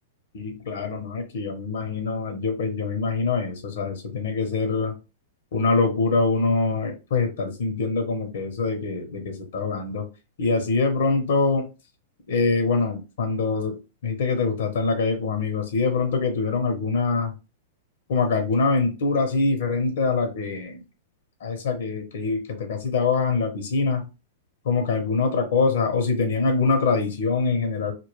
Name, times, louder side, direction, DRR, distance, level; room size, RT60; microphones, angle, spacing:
voice 1, 0.3-5.0 5.5-10.1 10.4-11.7 12.3-17.3 18.1-20.8 21.4-24.1 24.6-27.9, left 4 dB, 75° left, 4 dB, 0.7 m, -24 dB
2.2 x 2.1 x 3.0 m, 0.28 s
hypercardioid pair, 135°, 0 cm